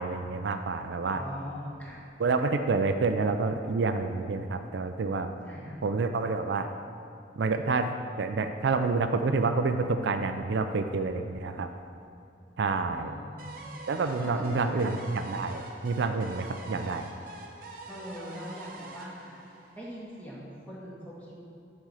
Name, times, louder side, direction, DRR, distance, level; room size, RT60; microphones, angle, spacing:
voice 1, 0.0-1.2 2.2-5.3 5.8-6.7 7.4-11.7 12.6-13.1 13.9-17.1, right 4 dB, 70° right, 7 dB, 0.4 m, -28 dB
voice 2, 1.1-2.0 5.4-5.8 12.8-14.4 14.7-14.8 17.9-19.4 19.7-21.4, equal, 10° left, -7 dB, 1.6 m, -42 dB
sound 1, 13.4-20.3, right 2 dB, 50° right, 0.8 m, -45 dB
10.0 x 4.3 x 4.8 m, 2.6 s
head